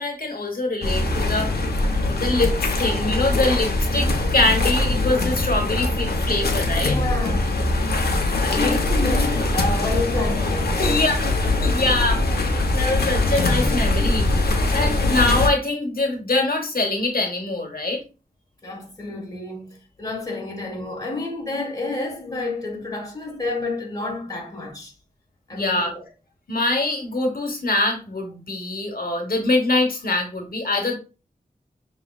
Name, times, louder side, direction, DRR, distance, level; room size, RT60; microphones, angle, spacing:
voice 1, 0.0-1.5 2.1-7.0 8.2-8.8 10.8-11.2 11.6-12.2 12.7-14.2 14.7-18.0 25.5-25.9 26.5-30.9, left 2 dB, 65° left, 1.1 m, -24 dB
sound 1, 0.8-15.5, left 2 dB, 85° left, 0.7 m, -22 dB
voice 2, 6.8-7.8 8.4-11.0 18.6-24.9 25.5-26.0, left 2 dB, 25° left, 1.3 m, -29 dB
5.9 x 3.0 x 2.3 m
wide cardioid pair, 75°, 16 cm